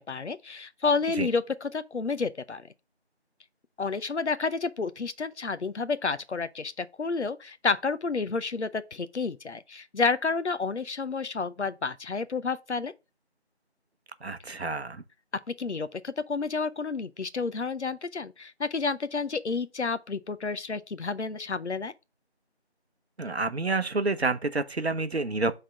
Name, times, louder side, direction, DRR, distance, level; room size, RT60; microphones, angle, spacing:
voice 1, 0.1-2.6 3.8-12.9 15.5-21.9, left 4 dB, 85° left, 0.7 m, -30 dB
voice 2, 14.2-15.0 23.2-25.5, right 3 dB, 70° right, 0.8 m, -28 dB
5.6 x 3.6 x 5.7 m
figure-of-eight pair, 175°, 33 cm